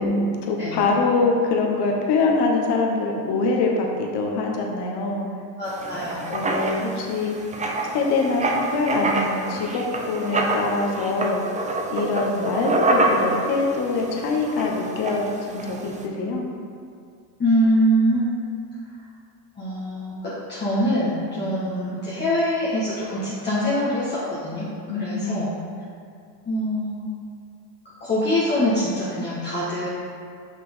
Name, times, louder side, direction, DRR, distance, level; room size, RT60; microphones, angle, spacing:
voice 1, 0.0-5.3 5.9-6.0 6.3-7.4 7.8-11.4 11.9-16.4 24.9-25.5, left 3 dB, 55° left, 0 dB, 1.2 m, -24 dB
voice 2, 5.6-6.3 17.4-18.3 19.5-24.7 24.9-25.5 26.4-27.0 28.0-29.9, equal, 20° left, -10 dB, 1.5 m, -24 dB
Writing, 5.7-16.0, right 2 dB, 15° right, 0.5 m, -27 dB
6.1 x 5.8 x 3.7 m, 2.3 s
supercardioid pair, 115°, 48 cm